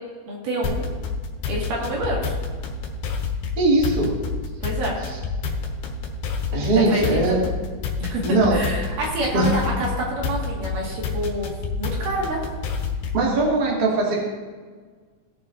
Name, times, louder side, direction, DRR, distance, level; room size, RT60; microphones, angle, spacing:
voice 1, 0.3-0.9 1.5-2.3 4.6-5.0 6.9-7.4 8.0-8.2 8.5-11.5 11.8-12.4, right 1 dB, 65° right, -3 dB, 3.4 m, -27 dB
sound 1, 0.6-13.3, left 4 dB, 70° left, 2.6 m, -29 dB
voice 2, 3.6-4.1 6.5-7.5 8.2-8.6 9.3-9.5 13.1-14.2, right 2 dB, 30° right, -4 dB, 2.2 m, -20 dB
19.0 x 7.0 x 2.6 m, 1.5 s
omnidirectional pair, 4.1 m